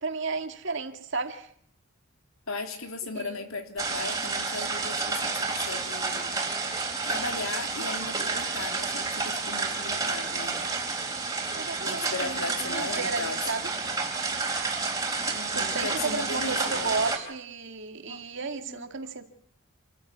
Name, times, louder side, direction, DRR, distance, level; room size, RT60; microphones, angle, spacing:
voice 1, 0.0-1.5 3.1-3.5 11.5-13.7 15.5-19.3, right 4 dB, 60° right, 2.1 m, -33 dB
voice 2, 2.5-6.4 7.0-10.6 11.8-13.5 15.3-16.9 18.1-18.2 18.6-18.9, left 3 dB, 75° left, 3.0 m, -37 dB
sound 1, 3.8-17.2, right 4 dB, 15° right, 3.7 m, -30 dB
27.5 x 14.5 x 8.6 m
head